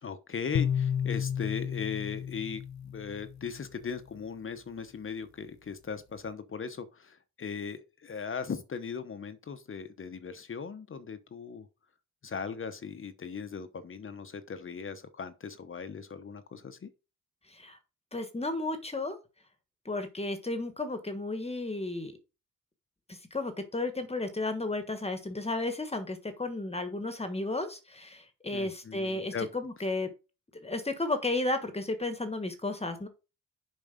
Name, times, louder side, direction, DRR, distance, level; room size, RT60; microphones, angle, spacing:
voice 1, 0.0-11.7 12.2-16.9 28.5-29.5, left 6 dB, 40° left, 0.9 m, -38 dB
sound 1, 0.5-3.8, left 8 dB, 55° left, 0.5 m, -32 dB
voice 2, 18.1-19.2 19.8-22.1 23.1-30.1 30.5-33.1, left 2 dB, 20° left, 1.3 m, -33 dB
7.2 x 5.3 x 5.1 m
cardioid pair, 120°, 33 cm